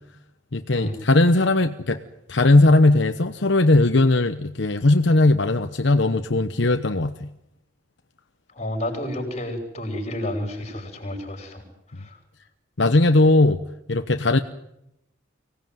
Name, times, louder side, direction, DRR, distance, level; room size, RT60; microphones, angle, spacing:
voice 1, 0.5-2.0 2.3-7.3 12.8-13.6 13.9-14.4, left 2 dB, 65° left, 8 dB, 1.0 m, -18 dB
voice 2, 8.6-11.6 12.0-12.1, left 1 dB, 35° left, 5 dB, 5.7 m, -30 dB
24.5 x 18.0 x 9.3 m, 0.84 s
head